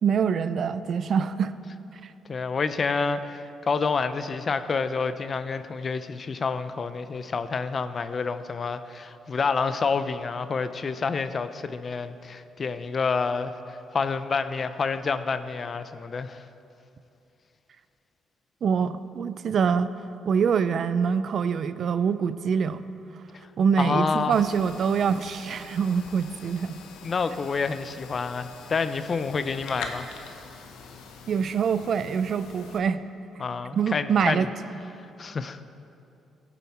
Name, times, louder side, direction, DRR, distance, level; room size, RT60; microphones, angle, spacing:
voice 1, 0.0-1.5 2.0-2.1 18.6-19.9 20.2-22.8 23.6-26.8 31.3-33.0 33.7-34.5, right 6 dB, 55° right, 13 dB, 0.4 m, -25 dB
voice 2, 2.3-16.4 23.8-24.4 27.0-30.1 33.4-34.5 34.9-35.7, left 5 dB, 40° left, 12 dB, 0.5 m, -28 dB
sound 1, 24.3-32.8, left 5 dB, 90° left, 0.9 m, -44 dB
16.0 x 7.1 x 4.3 m, 2.8 s
cardioid pair, 90°, 0 cm